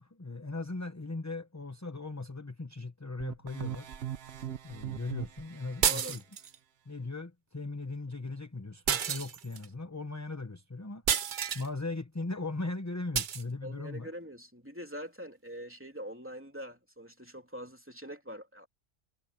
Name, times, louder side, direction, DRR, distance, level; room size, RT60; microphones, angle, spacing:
voice 1, 0.0-3.9 4.6-6.2 6.9-14.1, left 3 dB, 15° left, 0.9 m, -38 dB
sound 1, 3.2-5.9, right 11 dB, 65° right, 1.1 m, -40 dB
sound 2, 5.8-6.6 8.9-9.7 11.1-11.7 13.1-13.4, right 8 dB, 50° right, 0.8 m, -30 dB
voice 2, 5.9-6.2 13.6-18.7, equal, 10° right, 3.0 m, -44 dB
omnidirectional pair, 1.2 m